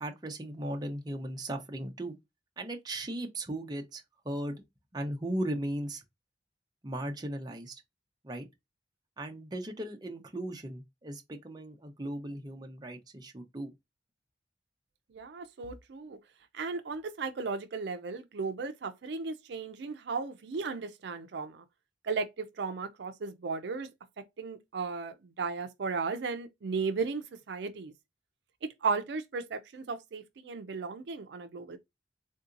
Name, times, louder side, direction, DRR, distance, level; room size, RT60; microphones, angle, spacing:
voice 1, 0.0-2.1 2.6-4.6 4.9-6.0 6.8-7.8 8.2-8.5 9.2-13.7, right 1 dB, 25° right, 0.6 m, -37 dB
voice 2, 15.1-16.2 16.5-21.6 22.0-23.9 24.4-27.9 28.8-31.8, right 4 dB, 70° right, 0.4 m, -35 dB
3.7 x 2.7 x 2.4 m
head